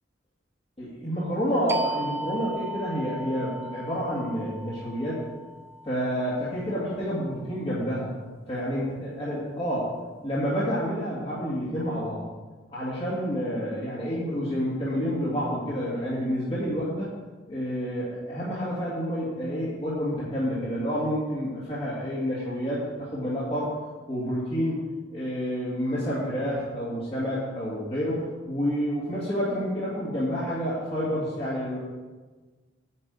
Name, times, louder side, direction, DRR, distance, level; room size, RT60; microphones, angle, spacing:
voice 1, 0.8-5.2 5.8-8.1 8.5-9.9 10.2-12.2 12.7-17.1 17.5-23.7 24.1-31.8, equal, 30° left, -9 dB, 2.3 m, -29 dB
sound 1, 1.7-7.0, right 1 dB, 15° right, 0.7 m, -37 dB
9.1 x 6.0 x 8.1 m, 1.3 s
head